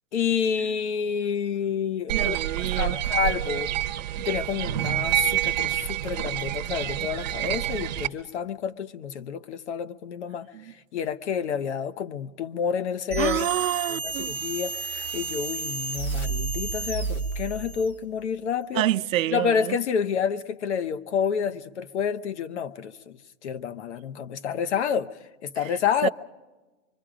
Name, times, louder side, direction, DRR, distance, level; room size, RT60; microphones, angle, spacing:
voice 1, 0.1-3.8 4.2-13.5 13.9-18.9 19.3-25.2 25.4-26.1, left 7 dB, 55° left, 1.0 m, -29 dB
sound 1, 2.1-8.1, right 14 dB, 35° right, 0.8 m, -27 dB
voice 2, 2.1-3.0 10.5-10.7 13.2-14.4 18.7-19.8 26.0-26.1, right 13 dB, 80° right, 0.6 m, -27 dB
sound 2, 13.1-18.0, right 4 dB, 15° left, 0.9 m, -31 dB
26.5 x 24.0 x 5.0 m
supercardioid pair, 175°, 40 cm